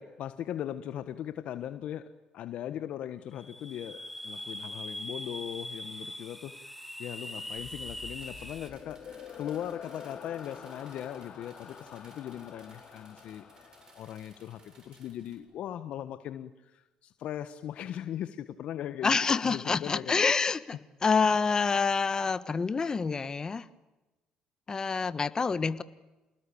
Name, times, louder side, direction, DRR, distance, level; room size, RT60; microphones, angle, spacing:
voice 1, 0.0-13.7 13.9-20.2, left 11 dB, 65° left, 11 dB, 1.3 m, -39 dB
sound 1, 3.3-8.7, left 1 dB, ahead, 3.0 m, -41 dB
sound 2, 7.6-14.9, left 7 dB, 50° left, 5.2 m, -48 dB
sound 3, 8.1-15.4, right 3 dB, 30° right, 7.5 m, -59 dB
voice 2, 19.0-23.7 24.7-25.8, left 5 dB, 30° left, 14 dB, 1.5 m, -27 dB
28.5 x 20.0 x 8.7 m, 1.1 s
supercardioid pair, 75°, 2 cm